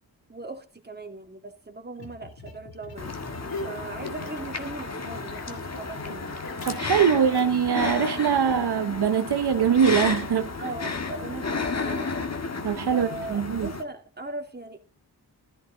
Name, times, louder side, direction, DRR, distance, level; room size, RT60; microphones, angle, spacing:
voice 1, 0.3-3.1 3.7-6.4 7.1-7.2 10.6-12.1 12.9-14.8, right 2 dB, 25° right, 2.2 m, -39 dB
sound 1, 2.0-4.6 4.9-7.7, left 2 dB, 70° left, 5.6 m, -41 dB
sound 2, 3.0-13.8, left 4 dB, 40° left, 1.8 m, -32 dB
voice 2, 6.7-10.5 12.6-13.7, right 7 dB, 80° right, 1.0 m, -23 dB
14.5 x 12.0 x 3.8 m
wide cardioid pair, 110°, 39 cm